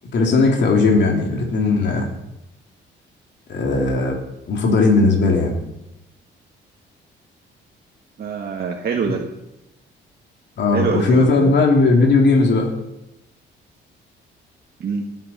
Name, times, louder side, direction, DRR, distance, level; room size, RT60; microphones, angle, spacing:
voice 1, 0.1-2.1 3.5-4.2 4.5-5.5 10.6-12.7, left 3 dB, 60° left, 0 dB, 2.9 m, -17 dB
voice 2, 8.2-9.2 10.7-11.6 14.8-15.1, right 6 dB, 55° right, 1 dB, 1.7 m, -24 dB
19.5 x 9.9 x 4.4 m, 0.88 s
cardioid pair, 90°, 20 cm